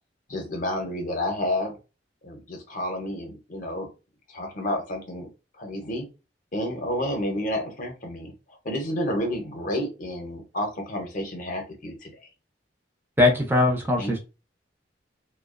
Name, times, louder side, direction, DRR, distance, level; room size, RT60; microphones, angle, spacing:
voice 1, 0.3-1.7 2.2-3.9 4.3-5.3 5.6-6.1 6.5-8.3 8.6-12.2 14.0-14.2, left 1 dB, 45° left, 3 dB, 0.7 m, -30 dB
voice 2, 13.2-14.2, left 2 dB, 10° right, 1 dB, 0.4 m, -20 dB
2.3 x 2.2 x 2.4 m, 0.30 s
head